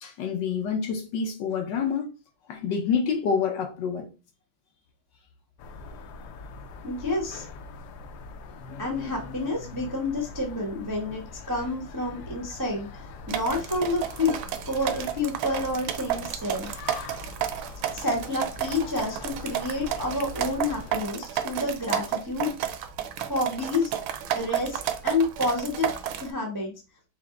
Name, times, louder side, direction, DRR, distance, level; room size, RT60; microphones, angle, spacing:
voice 1, 0.0-2.1 2.5-4.1, left 6 dB, 65° left, 1.2 m, -27 dB
sound 1, 5.6-21.0, left 4 dB, 85° left, 0.9 m, -42 dB
voice 2, 6.8-7.4 8.8-14.4 14.7-16.7 17.9-22.7 23.3-23.9 24.3-25.9 26.2-26.7, left 2 dB, 30° right, 0.3 m, -29 dB
sound 2, 13.3-26.3, right 10 dB, 75° right, 1.4 m, -32 dB
5.8 x 2.0 x 3.7 m
omnidirectional pair, 2.3 m